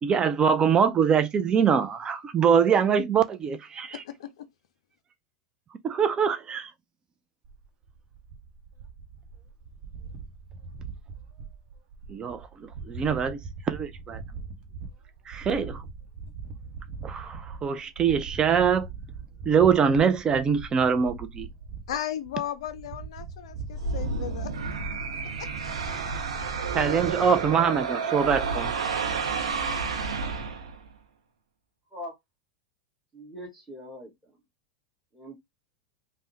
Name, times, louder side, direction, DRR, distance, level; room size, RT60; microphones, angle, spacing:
voice 1, 0.0-4.0 5.8-6.7 12.1-12.5 12.9-13.4 13.6-14.2 15.3-15.8 17.0-18.9 19.5-21.5 26.7-28.7, right 7 dB, 25° right, 0.4 m, -23 dB
voice 2, 3.9-4.5 21.9-24.5 24.9-25.1 25.4-25.5 25.9-26.0, left 11 dB, 75° left, 0.3 m, -36 dB
sound 1, 7.4-27.3, right 4 dB, 50° right, 0.8 m, -42 dB
sound 2, 23.7-30.9, right 5 dB, 90° right, 0.6 m, -30 dB
voice 3, 33.1-34.4 35.1-35.3, left 1 dB, 5° right, 1.5 m, -42 dB
3.4 x 2.1 x 2.6 m
hypercardioid pair, 100°, 3 cm